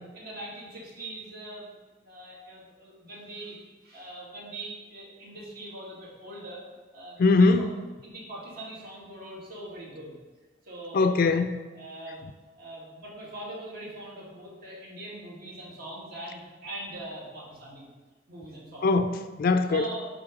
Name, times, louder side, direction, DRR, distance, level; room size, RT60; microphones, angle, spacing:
voice 1, 0.1-1.7 2.0-6.6 6.9-7.7 8.0-10.1 10.6-11.3 11.7-12.3 12.6-17.9 18.3-18.9 19.7-20.1, right 1 dB, 55° right, -5 dB, 2.0 m, -42 dB
voice 2, 7.2-7.7 10.9-11.6 18.8-19.9, left 3 dB, 50° left, 8 dB, 0.3 m, -21 dB
7.9 x 3.1 x 5.2 m, 1.3 s
head